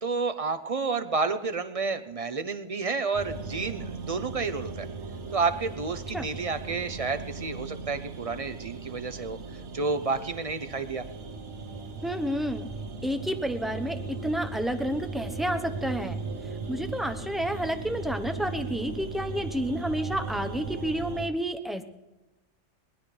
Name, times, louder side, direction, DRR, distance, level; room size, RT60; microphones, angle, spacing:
voice 1, 0.0-4.9 5.3-11.0, right 4 dB, 35° right, 9 dB, 0.8 m, -30 dB
sound 1, 3.1-21.3, right 3 dB, 75° right, 1.5 m, -38 dB
voice 2, 12.0-12.7 13.0-16.2 16.7-21.8, equal, ahead, 7 dB, 0.8 m, -30 dB
22.0 x 19.5 x 3.3 m, 1.1 s
omnidirectional pair, 1.2 m